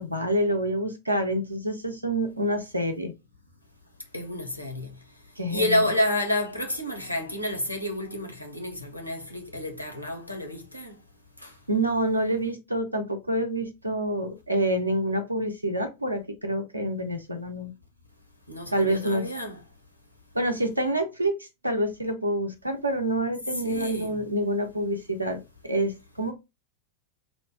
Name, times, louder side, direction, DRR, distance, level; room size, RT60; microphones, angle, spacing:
voice 1, 0.0-3.1 5.4-5.8 11.7-17.7 18.7-19.3 20.3-26.3, right 1 dB, 85° right, 0.5 m, -27 dB
voice 2, 4.1-4.9 5.5-10.9 11.4-11.5 18.5-19.6 23.6-24.2, left 1 dB, 90° left, 0.7 m, -29 dB
2.9 x 2.1 x 2.8 m
figure-of-eight pair, 90°, 0 cm